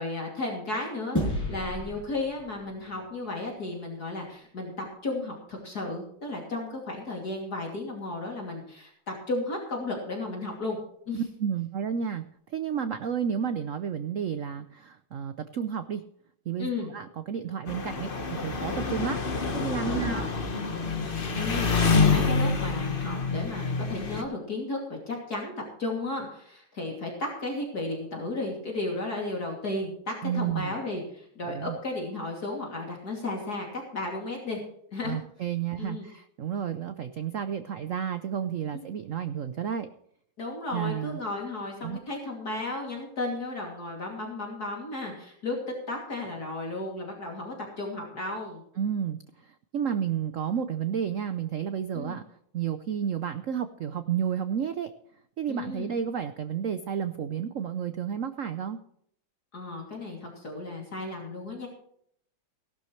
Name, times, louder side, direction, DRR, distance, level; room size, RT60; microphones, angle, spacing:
voice 1, 0.0-10.8 11.1-11.3 16.6-16.9 19.9-20.3 21.3-34.6 34.9-35.2 35.8-36.1 38.7-38.9 40.4-45.6 45.9-48.6 51.9-52.2 55.5-55.9 59.5-61.7, left 2 dB, 45° left, -1 dB, 3.3 m, -34 dB
sound 1, 1.2-3.8, equal, 10° left, 5.8 m, -33 dB
voice 2, 11.1-16.0 16.5-19.2 19.5-20.3 30.2-30.8 31.4-31.8 35.0-39.9 40.7-41.2 41.8-42.0 48.8-52.2 52.5-54.9 55.4-58.8, right 8 dB, 85° right, 10 dB, 0.6 m, -31 dB
Engine, 17.7-24.2, left 4 dB, 30° left, 1.3 m, -27 dB
17.5 x 12.0 x 3.2 m, 0.68 s
omnidirectional pair, 2.3 m